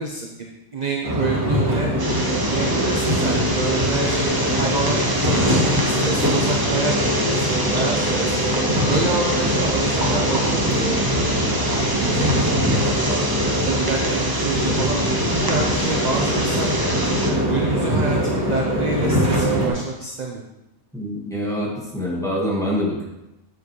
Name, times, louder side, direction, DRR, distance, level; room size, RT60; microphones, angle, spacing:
voice 1, 0.0-1.9 2.5-8.4 8.9-13.2 13.6-16.7 17.3-20.4, right 3 dB, 40° right, 1 dB, 0.6 m, -28 dB
sound 1, 1.0-19.7, equal, 85° right, 2.5 m, -22 dB
sound 2, 2.0-17.3, right 1 dB, 15° right, 1.1 m, -27 dB
voice 2, 20.9-23.0, equal, ahead, -4 dB, 1.5 m, -25 dB
7.7 x 7.3 x 3.2 m, 0.93 s
omnidirectional pair, 1.5 m